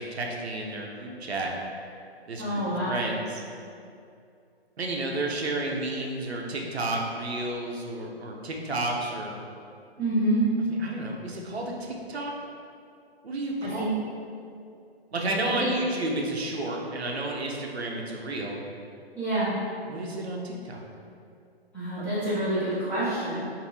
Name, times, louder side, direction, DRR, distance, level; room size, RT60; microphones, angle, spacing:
voice 1, 0.0-1.5 2.3-3.4 4.8-9.3 10.6-12.3 13.2-13.8 15.1-18.6 19.9-20.8 22.0-22.1, right 2 dB, 80° right, 0 dB, 0.5 m, -31 dB
voice 2, 2.4-3.0 10.0-10.5 13.8-13.9 15.6-15.7 19.2-19.5 21.7-23.4, right 1 dB, 5° left, -16 dB, 0.8 m, -27 dB
2.6 x 2.5 x 3.2 m, 2.5 s
figure-of-eight pair, 135°, 32 cm